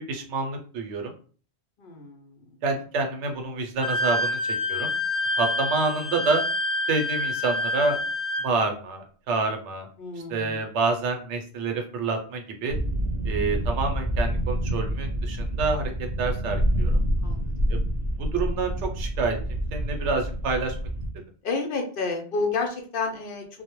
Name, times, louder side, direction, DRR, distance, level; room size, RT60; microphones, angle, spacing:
voice 1, 0.1-1.1 2.6-4.4 4.7-4.9 5.4-6.4 6.9-8.0 8.4-9.9 10.3-12.8 13.2-15.9 16.2-17.0 17.7-17.8 18.2-19.4 19.7-20.7, right 3 dB, 90° right, 4 dB, 0.9 m, -27 dB
voice 2, 1.8-2.3 10.0-10.6 17.2-17.5 21.4-23.6, left 4 dB, 60° left, 3 dB, 0.6 m, -30 dB
Wind instrument woodwind instrument, 3.8-8.5, left 1 dB, 20° right, 0.9 m, -27 dB
sound 1, 12.7-21.1, equal, 50° right, 0.5 m, -27 dB
2.1 x 2.0 x 2.9 m, 0.41 s
omnidirectional pair, 1.1 m